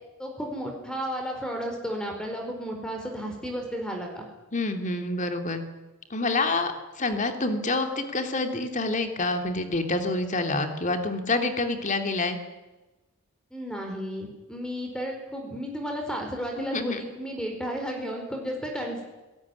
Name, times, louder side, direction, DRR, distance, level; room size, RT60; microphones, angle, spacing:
voice 1, 0.2-4.2 13.5-19.0, equal, 5° left, 2 dB, 4.6 m, -33 dB
voice 2, 4.5-5.6 6.1-12.4 16.6-17.0, left 2 dB, 35° left, 6 dB, 3.1 m, -27 dB
26.5 x 18.5 x 10.0 m, 1.1 s
head